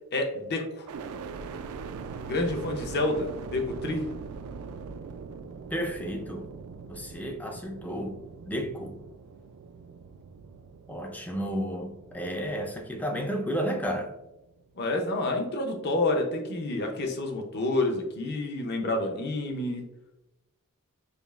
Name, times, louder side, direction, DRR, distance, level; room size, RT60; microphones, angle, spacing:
voice 1, 0.1-0.9 2.2-4.0 14.8-19.8, left 2 dB, 50° left, 3 dB, 0.6 m, -29 dB
sound 1, 0.9-14.9 15.4-16.1, right 5 dB, 70° right, 0.3 m, -42 dB
voice 2, 5.7-6.5 6.9-8.2 8.5-9.0 10.9-14.1, equal, 5° left, 3 dB, 0.4 m, -32 dB
5.1 x 2.4 x 2.4 m, 0.93 s
head